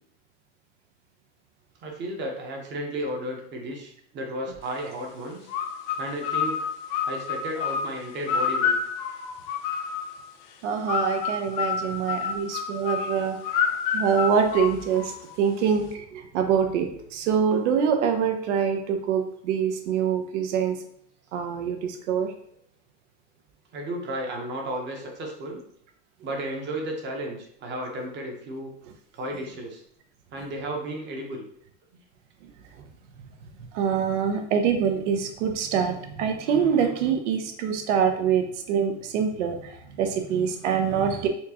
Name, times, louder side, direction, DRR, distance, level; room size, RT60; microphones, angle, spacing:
voice 1, 1.8-5.4 6.0-6.7 7.1-8.8 23.7-25.6 26.2-28.7 29.1-29.8 30.3-31.4, right 1 dB, 30° right, 1 dB, 0.9 m, -33 dB
sound 1, 5.5-10.2 10.9-15.3, left 6 dB, 55° left, 0.5 m, -29 dB
voice 2, 10.6-20.8 21.3-22.3 32.4-32.5 32.8-32.9 33.7-41.3, right 7 dB, 80° right, 5 dB, 0.8 m, -25 dB
4.4 x 2.3 x 2.8 m, 0.68 s
supercardioid pair, 135°, 35 cm